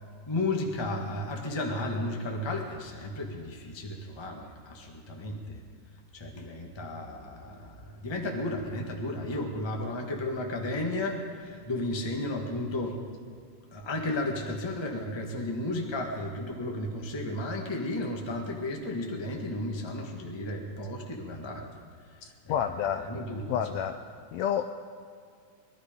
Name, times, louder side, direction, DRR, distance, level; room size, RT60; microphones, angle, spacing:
voice 1, 0.3-5.6 6.1-13.0 13.7-21.7 22.4-22.5 22.9-23.4 23.7-23.8, left 1 dB, 20° left, 1 dB, 0.8 m, -33 dB
voice 2, 22.5-23.0 23.5-24.0 24.3-24.7, left 9 dB, 80° left, 8 dB, 1.6 m, -29 dB
22.0 x 12.0 x 5.2 m, 2.2 s
omnidirectional pair, 3.6 m